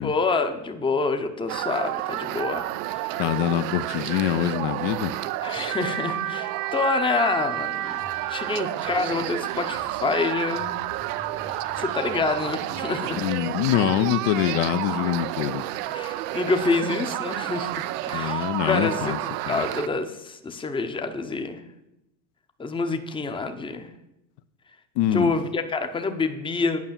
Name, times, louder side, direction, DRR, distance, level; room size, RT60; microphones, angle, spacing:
voice 1, 0.0-2.7 2.9-3.2 5.4-7.9 8.3-10.8 11.8-13.2 15.9-21.6 22.6-23.9 25.1-26.8, left 3 dB, 10° left, 7 dB, 0.7 m, -27 dB
sound 1, 1.5-19.9, right 15 dB, 85° right, 0.7 m, -30 dB
voice 2, 3.2-5.2 13.1-15.6 18.1-19.2 19.5-19.6 25.0-25.3, left 12 dB, 60° left, 11 dB, 0.7 m, -24 dB
sound 2, 7.7-12.9, left 3 dB, 80° left, 1.8 m, -47 dB
9.5 x 5.5 x 7.4 m, 0.89 s
supercardioid pair, 125°, 46 cm